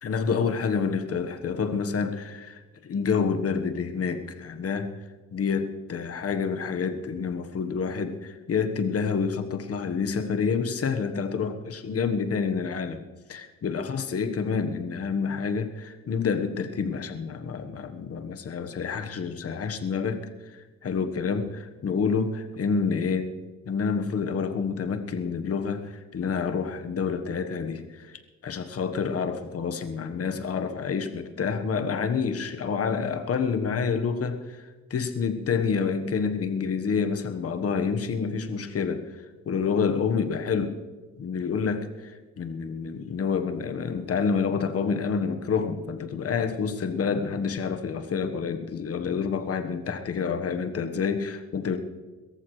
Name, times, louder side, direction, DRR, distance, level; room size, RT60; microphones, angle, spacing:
voice 1, 0.0-4.9 5.3-23.3 23.6-34.6 34.9-39.1 39.4-40.8 41.2-51.8, left 5 dB, 50° left, 7 dB, 1.4 m, -28 dB
22.0 x 14.0 x 3.3 m, 1.3 s
cardioid pair, 90°, 30 cm